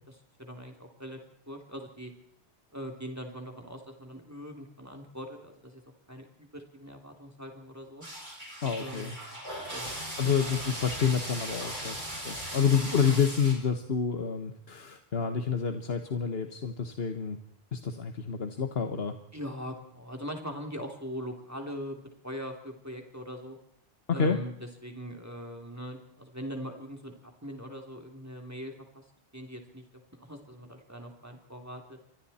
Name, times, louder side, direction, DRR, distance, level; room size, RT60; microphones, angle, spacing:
voice 1, 0.4-1.2 1.5-2.1 2.7-5.8 6.1-8.1 8.8-9.4 9.7-9.9 19.3-23.6 24.1-24.5 24.8-27.1 27.4-29.0 29.3-29.8 30.1-32.0, equal, 15° right, 3 dB, 3.1 m, -41 dB
sound 1, 8.0-13.5, equal, 50° right, 7.8 m, -38 dB
voice 2, 8.6-9.2 10.2-17.4 17.7-19.2 24.1-24.4, left 6 dB, 75° left, 7 dB, 1.5 m, -28 dB
29.0 x 24.0 x 4.3 m, 0.72 s
omnidirectional pair, 1.0 m